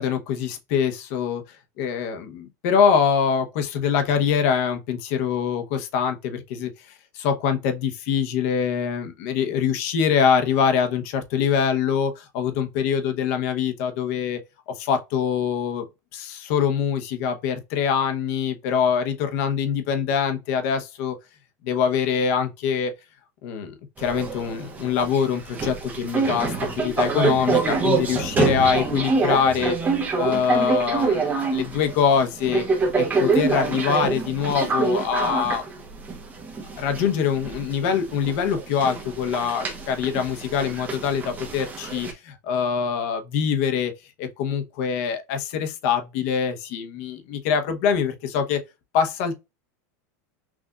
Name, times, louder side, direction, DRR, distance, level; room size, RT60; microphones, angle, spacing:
voice 1, 0.0-1.4 1.8-14.4 14.7-15.9 16.1-21.1 21.6-22.9 23.4-29.8 30.1-32.6 32.9-35.6 36.8-43.9 44.2-48.6 48.9-49.4, left 7 dB, 60° left, 0.9 m, -24 dB
sound 1, 24.0-42.1, right 4 dB, 20° right, 0.9 m, -26 dB
6.1 x 2.5 x 2.3 m
supercardioid pair, 140°, 9 cm